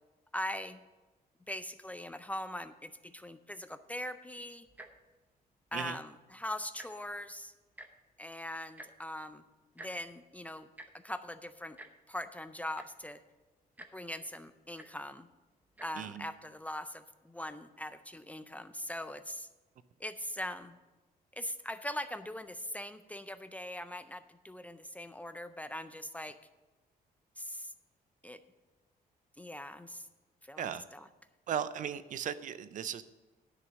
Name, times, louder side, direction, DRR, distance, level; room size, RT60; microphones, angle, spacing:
voice 1, 0.3-0.8 1.5-4.7 5.7-7.5 8.2-9.4 9.8-10.7 11.0-11.8 12.1-13.2 13.9-15.3 15.8-19.5 20.0-20.8 21.3-26.4 27.4-27.7 28.2-28.4 29.4-30.1 30.4-31.1, left 1 dB, 10° left, 11 dB, 0.4 m, -41 dB
Tick-tock, 4.7-5.0 5.7-5.9 6.2-6.3 6.6-7.1 7.8-7.9 8.8-8.9 9.8-9.9 10.8-10.9 11.8-11.9 12.5-12.6 12.7-13.1 13.8-13.9 14.8-14.9 15.7-15.9 16.6-16.7, right 1 dB, 10° right, 0.8 m, -49 dB
voice 2, 16.0-16.3 30.6-30.8 31.5-33.0, right 8 dB, 55° right, 14 dB, 0.5 m, -37 dB
11.0 x 6.5 x 6.3 m, 1.2 s
cardioid pair, 145°, 16 cm